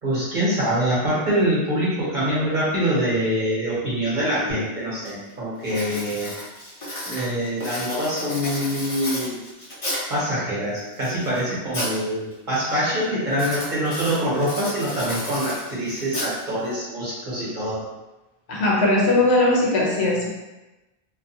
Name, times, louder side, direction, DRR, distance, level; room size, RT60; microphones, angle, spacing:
voice 1, 0.0-6.3 7.0-9.4 10.1-17.8, equal, 50° right, -8 dB, 1.1 m, -24 dB
Writing, 4.5-4.6 5.0-5.3 5.6-10.2 10.8-12.0 12.3-12.7 13.3-16.7, left 1 dB, 35° left, 0.7 m, -33 dB
voice 2, 18.5-20.3, left 2 dB, 80° left, -4 dB, 1.0 m, -19 dB
2.6 x 2.2 x 2.7 m, 1.0 s
omnidirectional pair, 1.1 m